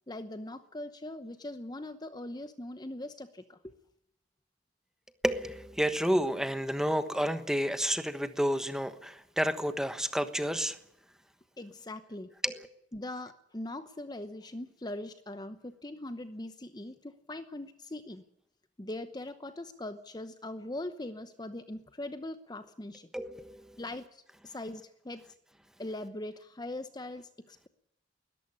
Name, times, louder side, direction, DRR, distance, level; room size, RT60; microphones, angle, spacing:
voice 1, 0.1-3.7 11.6-12.3 12.9-18.2 18.8-23.1 23.8-25.2 25.8-27.7, left 1 dB, 20° left, 10 dB, 0.9 m, -41 dB
voice 2, 5.2-10.8 12.4-12.7 23.1-23.8, equal, 5° right, 10 dB, 1.2 m, -30 dB
21.0 x 13.5 x 9.7 m, 0.79 s
head